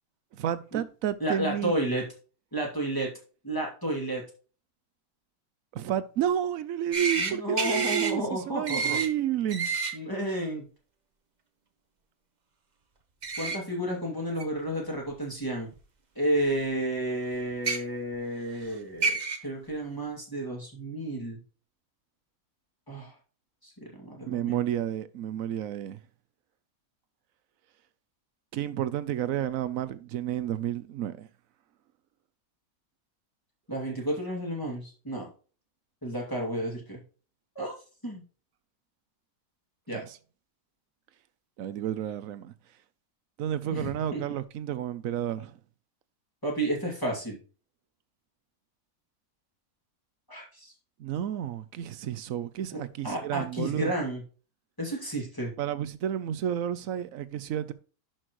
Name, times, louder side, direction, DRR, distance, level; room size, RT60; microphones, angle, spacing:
voice 1, 0.3-1.7 5.7-9.7 24.3-26.0 28.5-31.3 39.9-40.0 41.6-42.5 43.4-45.6 51.0-53.9 55.6-57.7, right 10 dB, 70° right, 1.0 m, -31 dB
voice 2, 1.2-2.1 2.5-3.1 3.4-4.2 7.2-9.0 9.9-10.6 13.4-15.7 16.1-19.2 19.4-21.4 22.9-23.2 23.6-24.6 33.7-35.3 36.0-37.0 37.6-37.7 38.0-38.2 39.9-40.0 43.7-44.2 46.4-47.4 50.3-50.7 53.0-54.2 54.8-55.5, right 1 dB, 15° left, 2.4 m, -31 dB
sound 1, 6.9-7.3 7.6-8.1 8.7-9.1 9.5-9.9 13.2-13.6 14.4-14.5 15.7-15.8 17.5-17.8 18.7-18.8 19.0-19.4, right 4 dB, 35° right, 1.0 m, -28 dB
11.0 x 6.0 x 3.0 m
omnidirectional pair, 1.6 m